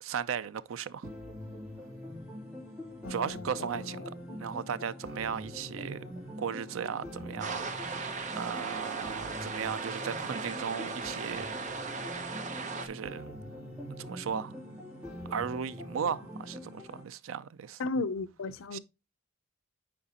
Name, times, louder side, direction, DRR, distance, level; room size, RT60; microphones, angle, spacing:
voice 1, 0.0-1.1 3.1-4.0 4.4-6.0 6.4-8.0 8.3-11.5 12.8-13.2 14.0-14.5 15.3-17.8 18.7-18.8, right 7 dB, 80° right, 0.4 m, -36 dB
sound 1, 1.0-17.0, left 1 dB, 5° right, 3.0 m, -44 dB
voice 2, 3.0-4.4 17.8-18.8, left 3 dB, 80° left, 0.5 m, -36 dB
sound 2, 7.4-12.9, right 4 dB, 40° right, 0.8 m, -37 dB
8.7 x 4.8 x 2.8 m
head